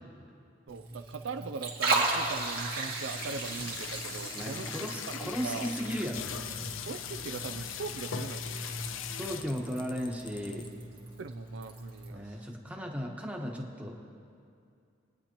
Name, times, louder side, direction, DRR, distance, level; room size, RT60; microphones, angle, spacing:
Liquid, 0.7-12.1, right 3 dB, 50° right, 1.9 m, -37 dB
voice 1, 0.7-4.7 5.1-5.7 6.9-8.7 11.2-12.5, right 5 dB, 70° right, 8 dB, 0.4 m, -40 dB
sound 1, 1.8-9.7 10.2-10.3 10.5-10.8 11.2-12.5, left 7 dB, 90° left, 0.6 m, -41 dB
sound 2, 3.1-10.7, left 7 dB, 25° left, 0.5 m, -50 dB
voice 2, 4.3-6.2 9.2-10.7 12.1-14.0, equal, 5° right, 0 dB, 1.2 m, -36 dB
23.5 x 9.7 x 3.0 m, 2.4 s
head